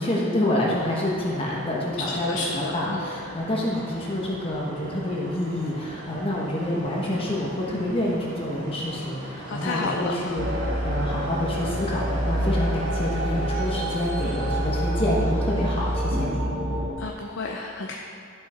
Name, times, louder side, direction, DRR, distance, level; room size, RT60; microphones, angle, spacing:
voice 1, 0.0-16.5, left 1 dB, 30° left, -4 dB, 1.2 m, -27 dB
sound 1, 0.6-16.3, equal, 75° right, 2.2 m, -39 dB
voice 2, 2.0-3.1 9.5-10.4 17.0-18.0, left 3 dB, 65° left, 0 dB, 0.6 m, -31 dB
sound 2, 10.4-16.9, equal, 60° right, 1.5 m, -27 dB
11.5 x 6.3 x 4.4 m, 2.2 s
head